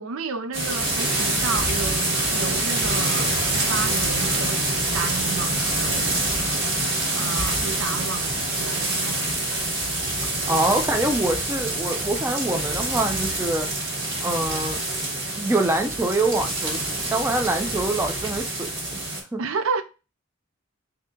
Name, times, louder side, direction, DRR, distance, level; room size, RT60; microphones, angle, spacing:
voice 1, 0.0-4.6 4.9-6.2 7.1-9.4 19.4-19.8, right 4 dB, 80° right, 0.5 m, -31 dB
sound 1, 0.5-19.2, right 2 dB, 55° right, 1.8 m, -26 dB
voice 2, 10.5-13.7 14.2-14.8 15.4-18.7 19.3-19.4, right 2 dB, 10° right, 0.5 m, -25 dB
4.0 x 2.7 x 3.7 m
head